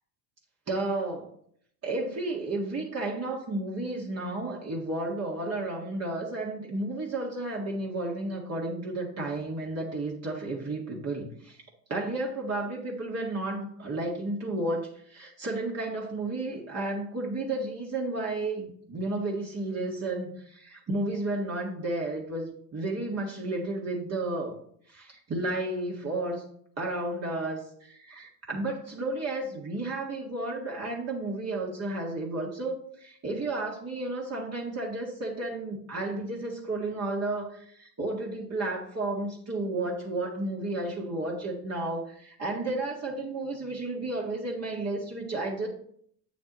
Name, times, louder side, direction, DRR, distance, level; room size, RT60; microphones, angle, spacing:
voice 1, 0.7-1.3 1.8-11.6 11.9-24.6 24.9-26.5 26.8-45.7, right 2 dB, 30° right, -3 dB, 1.9 m, -32 dB
8.0 x 7.1 x 3.0 m, 0.65 s
hypercardioid pair, 80°, 49 cm